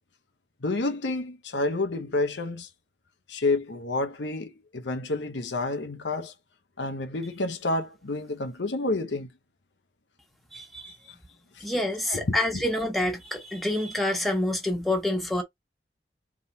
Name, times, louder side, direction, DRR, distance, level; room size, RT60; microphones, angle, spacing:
voice 1, 0.6-2.7 3.3-6.3 6.8-9.3 11.6-11.7 12.1-12.7, left 2 dB, 90° left, 1.0 m, -29 dB
voice 2, 10.5-10.9 11.6-15.4, left 1 dB, ahead, 1.2 m, -27 dB
4.1 x 3.7 x 2.9 m
head